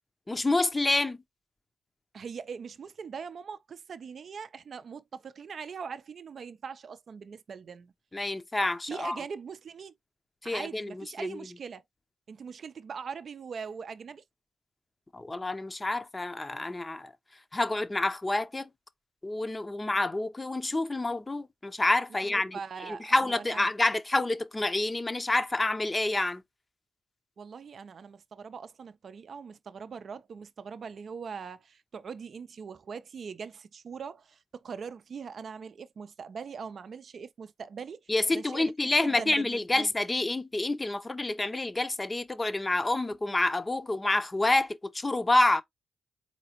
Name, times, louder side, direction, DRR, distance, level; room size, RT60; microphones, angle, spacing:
voice 1, 0.3-1.2 8.1-9.2 10.4-11.4 15.1-17.1 17.5-18.7 19.2-22.6 22.9-26.4 38.1-45.6, left 2 dB, 25° left, 0.6 m, -28 dB
voice 2, 2.1-7.9 8.9-9.9 10.4-11.8 12.3-14.2 22.1-23.7 27.4-39.9, right 6 dB, 60° right, 0.4 m, -41 dB
4.0 x 2.8 x 2.9 m
supercardioid pair, 55°, 0 cm